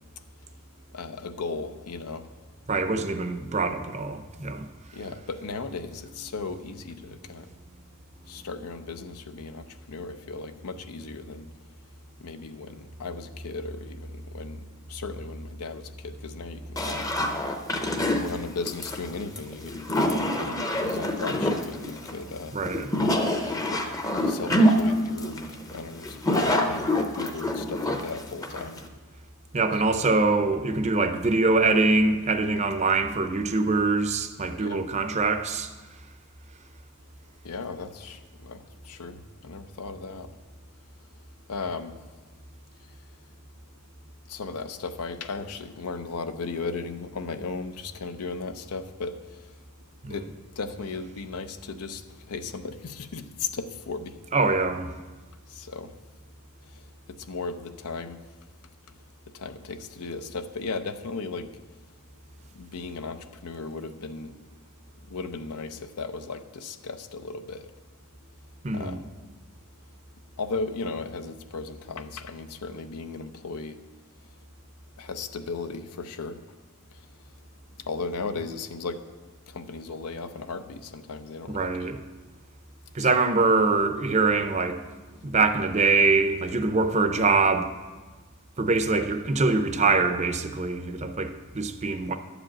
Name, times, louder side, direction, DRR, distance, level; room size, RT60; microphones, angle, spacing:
voice 1, 0.9-2.3 4.9-7.5 8.3-11.5 12.2-22.5 23.5-28.8 34.6-34.8 37.4-40.3 41.5-41.9 44.3-49.6 50.1-54.2 55.5-55.9 56.6-58.2 58.9-59.0 59.3-61.5 62.5-64.4 65.1-67.7 68.7-69.1 70.4-73.8 75.0-76.4 76.9-77.1 77.8-79.0 79.5-81.9 83.0-83.2, left 4 dB, 90° left, 0.6 m, -36 dB
voice 2, 2.7-4.7 22.5-22.9 29.5-35.7 50.0-50.2 54.3-54.9 68.6-69.0 81.5-82.0 82.9-84.8 85.2-87.7 88.6-92.2, right 3 dB, 30° right, 0.5 m, -24 dB
sound 1, 16.8-28.9, left 1 dB, 15° left, 0.6 m, -26 dB
11.0 x 5.0 x 7.5 m
head